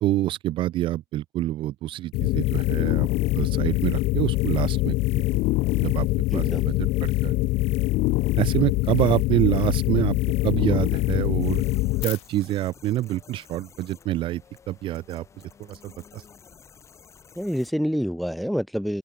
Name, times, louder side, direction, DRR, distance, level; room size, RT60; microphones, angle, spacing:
voice 1, 0.0-3.1 3.3-5.2 5.8-6.1 6.3-7.4 8.4-10.2 10.4-11.6 12.0-14.4 14.7-15.2 15.7-16.2, right 14 dB, 40° right, 0.5 m, -26 dB
sound 1, 2.1-12.2, left 21 dB, 55° left, 0.5 m, -23 dB
voice 2, 6.3-6.7 17.4-19.0, equal, ahead, 0.8 m, -27 dB
sound 2, 11.4-17.7, left 6 dB, 20° left, 1.8 m, -52 dB
open air
cardioid pair, 155°, 13 cm